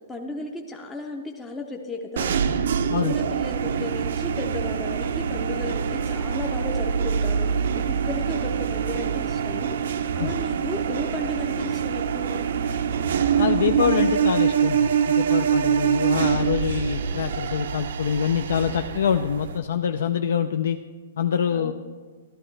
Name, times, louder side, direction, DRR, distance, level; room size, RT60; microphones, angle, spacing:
voice 1, 0.1-2.5 3.0-9.8 10.1-12.5 21.5-21.7, left 2 dB, 10° left, 1 dB, 0.5 m, -35 dB
sound 1, 2.2-19.6, right 7 dB, 70° right, 0.5 m, -25 dB
voice 2, 13.4-20.8 21.2-21.7, left 8 dB, 70° left, 8 dB, 0.4 m, -25 dB
12.5 x 12.0 x 3.3 m, 1.5 s
hypercardioid pair, 160°, 0 cm